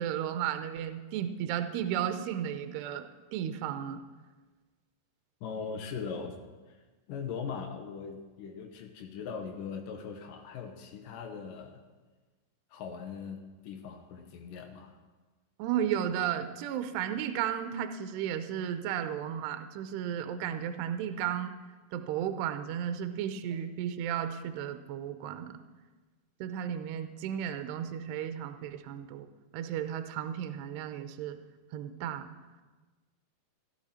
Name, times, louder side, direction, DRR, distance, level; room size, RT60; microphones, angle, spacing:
voice 1, 0.0-4.0 15.6-21.5 21.9-25.5 26.4-29.3 29.5-31.4 31.7-32.3, right 9 dB, 75° right, 9 dB, 2.6 m, -34 dB
voice 2, 5.4-6.3 6.7-6.8 7.1-11.8 12.7-15.0, left 6 dB, 90° left, 4 dB, 1.8 m, -40 dB
16.0 x 12.5 x 4.3 m, 1.3 s
omnidirectional pair, 5.4 m